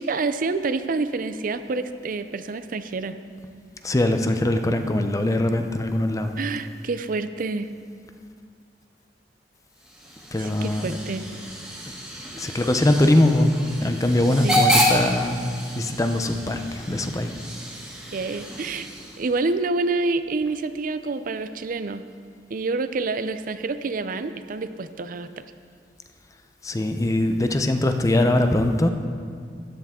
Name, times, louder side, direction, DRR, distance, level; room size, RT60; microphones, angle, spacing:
voice 1, 0.0-3.2 6.4-7.7 10.4-11.3 14.4-14.6 18.1-18.9 19.2-22.0 22.5-25.4, right 3 dB, 50° right, 11 dB, 0.5 m, -27 dB
voice 2, 3.8-6.3 10.3-10.9 12.3-15.4 15.8-17.4 26.6-28.9, left 1 dB, 20° left, 7 dB, 0.6 m, -22 dB
Hiss / Train / Alarm, 9.8-19.4, equal, 5° right, 1.9 m, -29 dB
13.0 x 10.5 x 3.6 m, 2.2 s
head